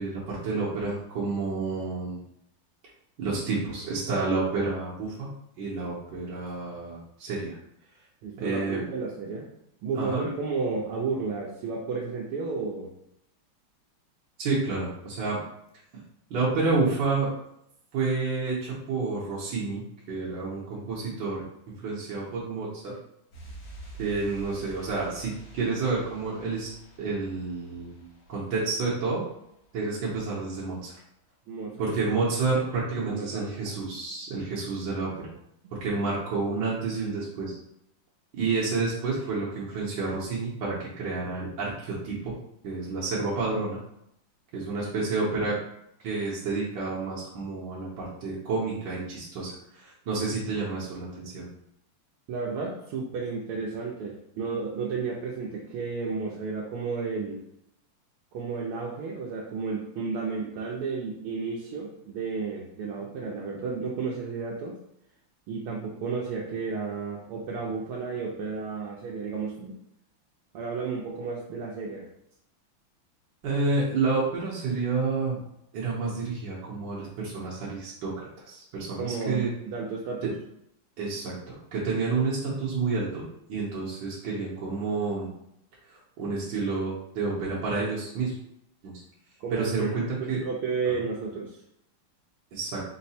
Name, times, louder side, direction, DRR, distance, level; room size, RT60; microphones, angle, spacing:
voice 1, 0.0-2.2 3.2-5.3 5.6-7.6 8.4-8.8 9.9-10.2 14.4-15.4 16.3-17.3 17.9-21.4 21.8-22.9 24.0-26.7 27.0-28.0 28.3-29.2 29.7-31.0 31.8-35.3 35.7-37.6 38.3-42.3 42.6-43.8 44.5-45.6 46.0-51.5 73.4-75.4 75.7-79.5 80.2-80.3 81.0-83.2 83.5-85.3 85.9-88.4 88.8-88.9 89.5-90.4 92.5-92.8, right 3 dB, 60° right, -6 dB, 1.4 m, -29 dB
voice 2, 8.2-9.4 9.8-12.9 31.5-31.9 33.1-33.5 52.3-57.4 58.3-64.8 65.5-69.7 70.5-72.1 79.0-80.3 89.4-89.9 90.4-91.6, right 4 dB, 80° right, -3 dB, 1.5 m, -32 dB
sound 1, 23.3-29.8 30.1-30.2, right 3 dB, 65° left, 2.0 m, -47 dB
4.6 x 2.1 x 4.1 m, 0.78 s
omnidirectional pair, 2.4 m